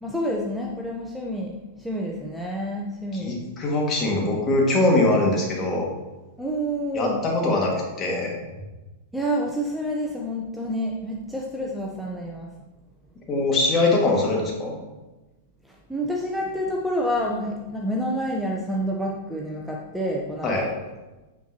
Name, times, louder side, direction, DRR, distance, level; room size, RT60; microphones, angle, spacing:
voice 1, 0.0-3.4 6.4-7.2 9.1-12.5 15.9-20.7, equal, 5° right, -1 dB, 0.8 m, -28 dB
voice 2, 3.1-5.9 6.9-8.4 13.3-14.7 20.4-20.7, left 2 dB, 30° left, -2 dB, 2.0 m, -22 dB
9.1 x 4.5 x 2.9 m, 1.1 s
hypercardioid pair, 105°, 0 cm